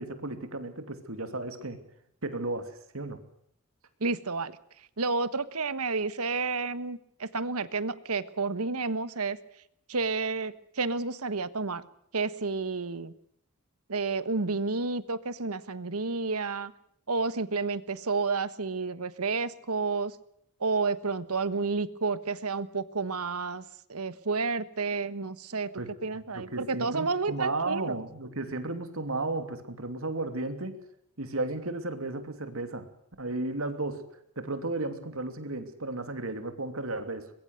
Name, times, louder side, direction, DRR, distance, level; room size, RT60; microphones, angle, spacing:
voice 1, 0.0-1.8 2.2-3.2 25.8-25.9 26.3-30.8 31.2-32.9 33.2-34.0 34.4-37.3, right 2 dB, 65° right, 8 dB, 2.9 m, -34 dB
voice 2, 4.0-4.5 5.0-9.4 9.9-11.8 12.1-13.1 13.9-16.7 17.1-20.1 20.6-23.6 23.9-25.7 26.0-28.0, right 4 dB, 90° right, 14 dB, 1.3 m, -30 dB
23.0 x 22.0 x 6.5 m, 0.70 s
head